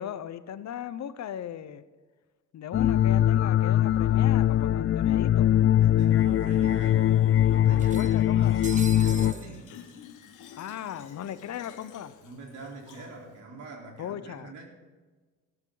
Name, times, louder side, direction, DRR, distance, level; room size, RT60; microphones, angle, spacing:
voice 1, 0.0-1.9 2.5-5.5 7.7-8.6 10.6-12.1 14.0-14.5, left 10 dB, 65° left, 13 dB, 0.9 m, -37 dB
sound 1, 2.7-9.3, left 11 dB, 45° left, 0.4 m, -22 dB
sound 2, 4.4-4.5 4.8-4.9 5.9-6.0 6.4-6.5 7.8-9.5, right 6 dB, 25° right, 0.5 m, -42 dB
voice 2, 5.8-8.6 9.0-9.8 12.2-14.7, right 3 dB, 75° right, 0 dB, 4.2 m, -44 dB
Fill (with liquid), 8.4-13.4, left 8 dB, 90° left, 1.5 m, -51 dB
15.0 x 13.0 x 4.0 m, 1.3 s
cardioid pair, 90°, 30 cm